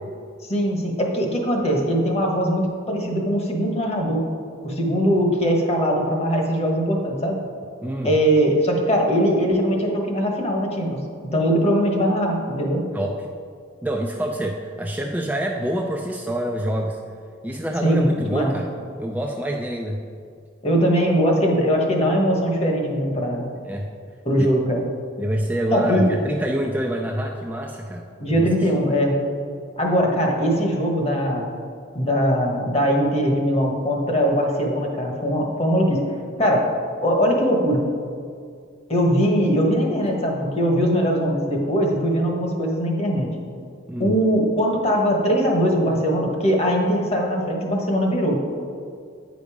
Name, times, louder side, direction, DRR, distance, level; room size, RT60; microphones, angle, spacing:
voice 1, 0.4-4.2 4.6-7.4 8.0-11.0 11.2-12.8 17.8-18.5 20.6-23.5 24.2-24.8 25.7-26.1 28.2-29.2 29.8-31.5 31.9-36.0 36.4-36.7 37.0-37.8 38.9-43.3 44.0-48.5, equal, 30° left, 1 dB, 1.2 m, -21 dB
voice 2, 7.8-8.1 12.9-13.2 13.8-17.0 17.4-18.7 19.0-20.0 23.6-23.9 24.4-24.5 25.2-28.5 43.9-44.1, right 1 dB, 10° right, 0 dB, 0.4 m, -26 dB
9.5 x 5.2 x 4.9 m, 2.2 s
head